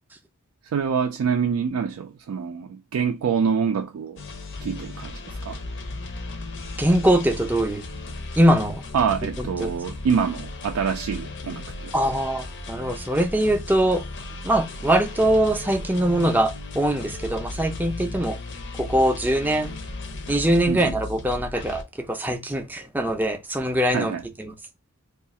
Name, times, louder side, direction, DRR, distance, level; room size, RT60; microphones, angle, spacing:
voice 1, 0.7-4.2 4.6-5.6 8.9-11.9 20.7-20.9 23.9-24.2, right 6 dB, 75° right, 0.3 m, -26 dB
sound 1, 4.2-21.8, left 2 dB, 55° left, 0.6 m, -36 dB
voice 2, 6.8-7.8 8.4-8.8 9.4-9.7 11.9-14.0 14.4-18.4 18.8-19.8 20.3-24.1 24.4-24.5, right 1 dB, 10° right, 0.4 m, -22 dB
2.7 x 2.4 x 4.0 m
head